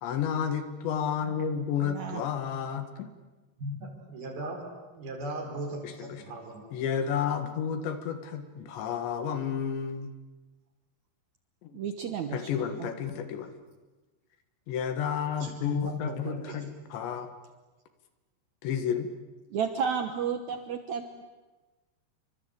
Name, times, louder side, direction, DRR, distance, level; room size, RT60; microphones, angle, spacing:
voice 1, 0.0-3.1 5.8-6.2 6.7-10.1 11.6-11.8 12.3-13.5 14.7-17.3 18.6-19.1, left 8 dB, 80° left, 8 dB, 4.0 m, -31 dB
voice 2, 1.8-2.2 11.7-12.5 12.8-12.9 19.5-21.2, right 7 dB, 75° right, 7 dB, 1.7 m, -32 dB
voice 3, 3.6-6.7 15.4-16.6, equal, 55° right, 3 dB, 6.5 m, -38 dB
29.0 x 25.0 x 8.1 m, 1.2 s
omnidirectional pair, 5.1 m